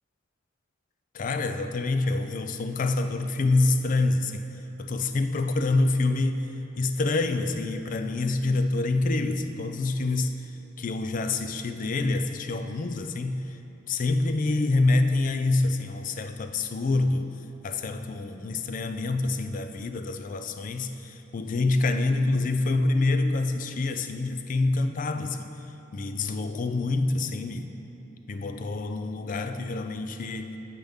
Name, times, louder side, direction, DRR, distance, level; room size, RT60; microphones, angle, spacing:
voice 1, 1.1-4.5 4.8-6.4 6.8-13.6 13.9-17.3 17.6-25.5 25.9-27.7 28.3-30.6, left 2 dB, 40° left, 8 dB, 0.4 m, -26 dB
9.0 x 8.3 x 3.6 m, 3.0 s
head